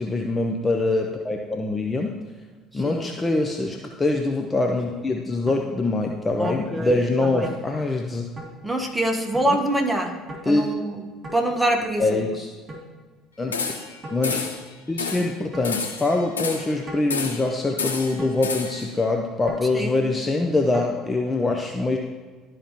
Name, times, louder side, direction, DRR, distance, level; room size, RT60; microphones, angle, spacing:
voice 1, 0.0-2.2 2.7-8.2 9.5-9.6 10.5-10.9 12.0-12.5 13.4-13.5 14.1-14.4 14.9-22.0, left 2 dB, 20° left, 2 dB, 0.7 m, -24 dB
voice 2, 2.7-3.1 6.4-7.5 8.6-11.0 11.3-12.2 19.7-20.0, right 1 dB, 5° right, 2 dB, 1.3 m, -25 dB
sound 1, 5.5-5.6 6.4-6.6 7.4-7.6 8.4-8.5 9.3-9.5 10.3-10.5 11.2-11.4 12.7-12.9 14.0-14.2 15.5-15.8 16.9-17.1 18.2-18.4 19.5-19.7 20.7-20.9, right 1 dB, 30° right, 2.6 m, -37 dB
sound 2, 13.5-14.0 14.2-14.6 15.0-15.3 15.6-16.7 17.1-17.5 17.8-18.9, left 5 dB, 85° left, 0.6 m, -29 dB
12.5 x 4.9 x 3.0 m, 1.4 s
figure-of-eight pair, 60°, 0 cm